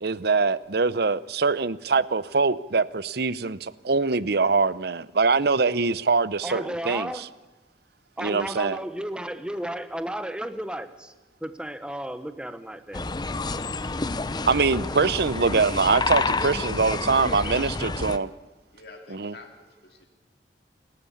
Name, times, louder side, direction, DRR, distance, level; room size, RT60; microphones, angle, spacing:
voice 1, 0.0-7.1 8.2-8.8 14.5-18.3 19.1-19.3, right 4 dB, 60° right, 17 dB, 0.8 m, -23 dB
voice 2, 6.4-7.3 8.2-11.1 11.4-13.0, right 1 dB, 5° right, 10 dB, 1.2 m, -33 dB
sound 1, 12.9-18.2, left 3 dB, 25° left, 0.7 m, -29 dB
voice 3, 17.5-18.2 18.7-20.1, left 2 dB, 60° left, 3 dB, 2.6 m, -46 dB
28.5 x 13.0 x 8.6 m, 1.1 s
head